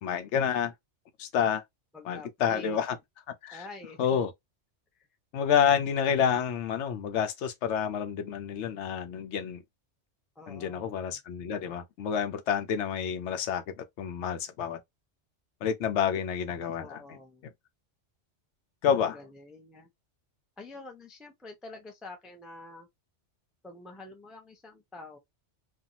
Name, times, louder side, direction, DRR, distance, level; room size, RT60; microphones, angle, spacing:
voice 1, 0.0-0.7 1.2-1.6 2.1-3.0 3.4-3.6 4.0-4.3 5.3-9.6 10.5-14.8 15.6-17.0 18.8-19.2, left 8 dB, 80° left, 0.9 m, -29 dB
voice 2, 1.9-2.8 3.5-4.3 4.9-5.1 10.4-11.2 16.8-17.4 19.1-19.9 20.6-22.9 23.6-25.2, left 2 dB, ahead, 0.3 m, -47 dB
2.6 x 2.3 x 2.7 m
omnidirectional pair, 1.2 m